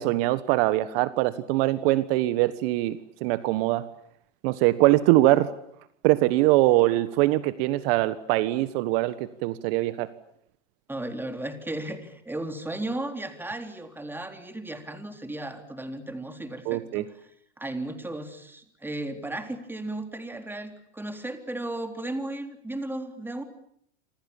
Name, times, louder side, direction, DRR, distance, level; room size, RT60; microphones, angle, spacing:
voice 1, 0.0-3.8 4.4-5.5 6.0-10.1 16.6-17.0, right 17 dB, 55° right, 14 dB, 1.5 m, -23 dB
voice 2, 10.9-17.3 17.6-23.4, right 1 dB, 5° right, 6 dB, 3.8 m, -35 dB
28.0 x 27.0 x 7.3 m, 0.72 s
hypercardioid pair, 120°, 36 cm